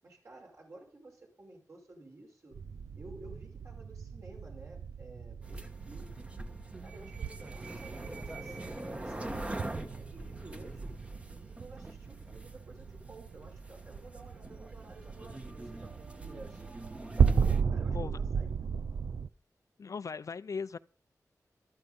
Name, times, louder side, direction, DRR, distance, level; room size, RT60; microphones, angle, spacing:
voice 1, 0.0-2.6 3.0-6.5 6.8-10.9 11.3-16.6 17.2-18.7, right 2 dB, 55° right, 5.8 m, -53 dB
sound 1, 2.5-19.3, right 6 dB, 85° right, 0.6 m, -35 dB
sound 2, 5.4-17.6, right 1 dB, 20° right, 1.3 m, -44 dB
voice 2, 19.8-20.8, left 5 dB, 60° left, 0.6 m, -38 dB
13.0 x 12.5 x 5.3 m
wide cardioid pair, 110°, 6 cm